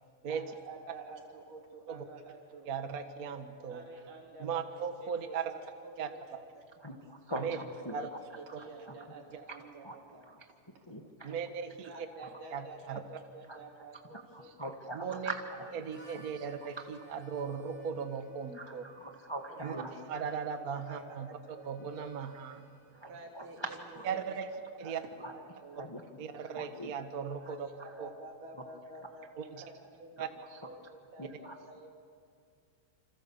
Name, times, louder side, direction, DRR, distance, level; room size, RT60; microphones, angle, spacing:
voice 1, 0.3-2.7 3.7-4.7 5.0-6.7 7.3-7.4 7.8-10.2 11.8-14.7 15.1-15.2 15.9-16.0 16.2-16.4 17.0-17.1 19.6-20.4 20.9-21.7 23.0-23.8 24.1-24.4 24.8-25.8 27.4-31.9, right 2 dB, 80° right, 1 dB, 4.8 m, -50 dB
voice 2, 2.6-3.8 4.4-5.5 6.0-6.1 7.4-7.6 7.9-8.1 8.5-8.6 11.2-11.9 12.5-13.0 14.9-15.3 15.8-18.8 19.6-19.7 20.1-21.3 21.6-22.6 24.1-24.5 24.8-25.0 26.2-27.7 28.0-28.1 29.5-29.6 30.2-30.3, right 7 dB, 45° right, 7 dB, 1.3 m, -37 dB
voice 3, 6.8-8.2 8.5-9.1 9.5-9.6 9.8-10.4 10.9-11.4 11.9-12.0 13.5-15.7 16.1-16.5 16.8-16.9 18.5-20.0 21.8-21.9 22.9-24.0 25.2-25.4 25.7-26.9 27.4-28.0 30.2-30.7 31.2-31.6, right 1 dB, 40° left, 3 dB, 0.3 m, -44 dB
Harmonica, 15.6-25.2, right 2 dB, 20° right, 4.2 m, -62 dB
28.5 x 26.5 x 7.2 m, 2.2 s
omnidirectional pair, 3.7 m